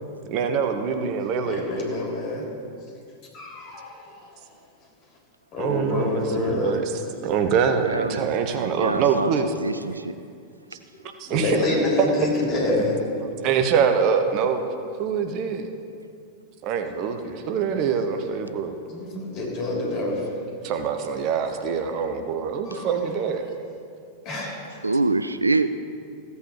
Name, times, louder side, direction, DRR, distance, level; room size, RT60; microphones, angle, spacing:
voice 1, 0.3-1.6 5.6-6.9 7.2-9.5 11.2-12.1 13.2-14.6 15.0-15.7 16.6-18.7 20.6-23.4, right 6 dB, 40° right, 6 dB, 0.8 m, -24 dB
voice 2, 1.4-2.5 3.3-4.0 5.5-6.8 11.3-13.0 18.9-20.2 22.7-22.9 24.2-24.6, left 2 dB, 40° left, -2 dB, 3.6 m, -26 dB
voice 3, 7.8-9.3 9.6-10.1 24.8-25.8, right 3 dB, 80° right, 12 dB, 0.4 m, -25 dB
15.5 x 8.3 x 4.8 m, 2.4 s
figure-of-eight pair, 90°, 0 cm